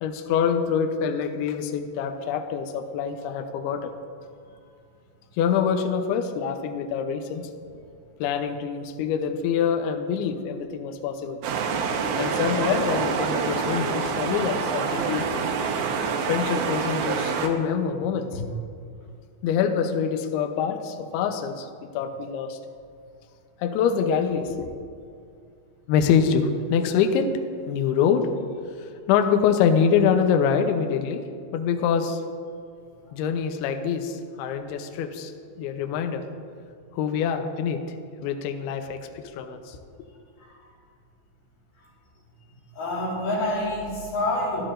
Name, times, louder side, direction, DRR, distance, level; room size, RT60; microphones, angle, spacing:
voice 1, 0.0-3.9 5.4-7.5 8.2-11.4 12.2-15.4 16.3-18.4 19.4-21.7 21.9-22.6 23.6-24.7 25.9-27.3 27.7-28.3 28.8-31.2 31.5-32.2 33.1-35.3 35.6-36.2 36.9-37.8 38.2-39.8, left 7 dB, 80° left, 5 dB, 2.3 m, -25 dB
sound 1, 11.4-17.5, right 5 dB, 85° right, 2.3 m, -26 dB
voice 2, 42.7-44.6, left 1 dB, 60° left, -5 dB, 3.5 m, -28 dB
14.0 x 11.5 x 2.5 m, 2.3 s
omnidirectional pair, 5.3 m